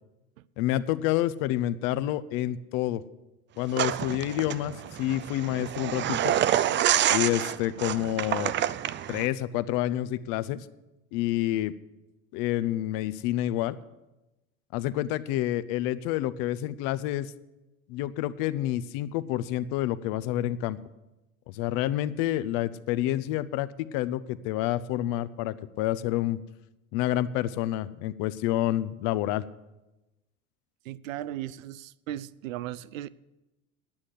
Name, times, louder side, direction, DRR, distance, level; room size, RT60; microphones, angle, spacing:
voice 1, 0.6-3.0 3.6-6.3 7.1-8.5 9.1-10.6 11.1-11.7 12.3-13.8 14.7-17.3 17.9-20.8 21.5-26.4 26.9-29.4, left 14 dB, 55° left, 0.7 m, -28 dB
sound 1, 3.7-9.3, right 11 dB, 30° right, 0.5 m, -27 dB
voice 2, 30.8-33.1, right 13 dB, 75° right, 0.6 m, -37 dB
9.8 x 8.7 x 8.0 m
hypercardioid pair, 75°, 41 cm